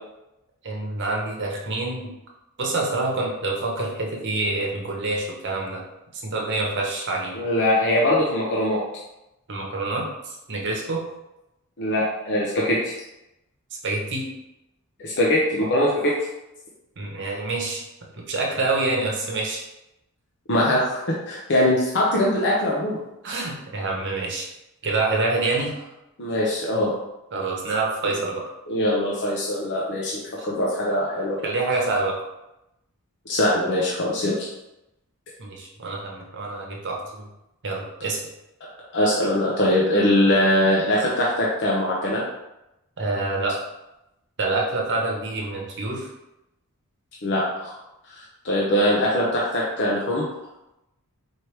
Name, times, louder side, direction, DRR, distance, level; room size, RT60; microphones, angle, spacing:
voice 1, 0.6-2.1 2.6-5.8 6.1-7.4 9.5-11.0 13.8-14.2 17.0-17.8 18.2-19.6 23.2-24.5 24.8-25.7 27.3-28.4 30.4-30.5 31.4-32.2 35.4-37.3 37.6-38.2 43.0-43.6 44.4-46.1, right 3 dB, 55° right, -1 dB, 0.9 m, -26 dB
voice 2, 7.3-8.8 11.8-12.9 15.0-16.1 20.5-21.0 21.3-23.0 26.2-26.9 28.7-31.4 33.3-34.5 38.9-42.2 47.2-47.8 48.1-50.2, left 1 dB, 55° left, -4 dB, 0.8 m, -22 dB
4.5 x 3.1 x 3.2 m, 0.90 s
head